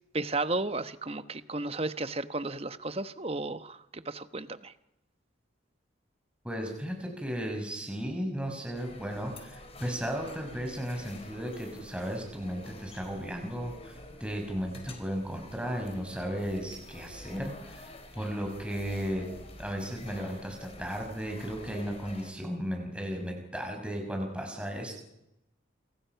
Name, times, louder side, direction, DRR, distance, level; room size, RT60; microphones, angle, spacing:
voice 1, 0.1-4.7, right 2 dB, 30° right, 11 dB, 1.1 m, -33 dB
voice 2, 6.4-19.3 19.6-24.9, equal, 5° right, 2 dB, 5.4 m, -35 dB
sound 1, 8.7-22.3, left 2 dB, 30° left, 4.2 m, -49 dB
29.0 x 24.5 x 5.9 m, 0.85 s
head